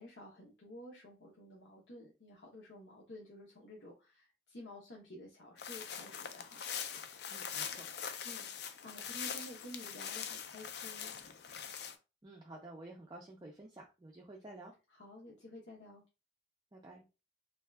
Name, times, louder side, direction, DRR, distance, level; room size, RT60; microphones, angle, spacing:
voice 1, 0.0-6.6 8.2-11.1 14.9-16.0, left 1 dB, 90° left, -3 dB, 0.8 m, -52 dB
sound 1, 5.6-11.9, left 7 dB, 65° left, 0.4 m, -43 dB
voice 2, 7.3-7.9 12.2-14.7 16.7-17.1, right 2 dB, 20° right, -1 dB, 0.4 m, -51 dB
2.7 x 2.3 x 3.2 m, 0.29 s
head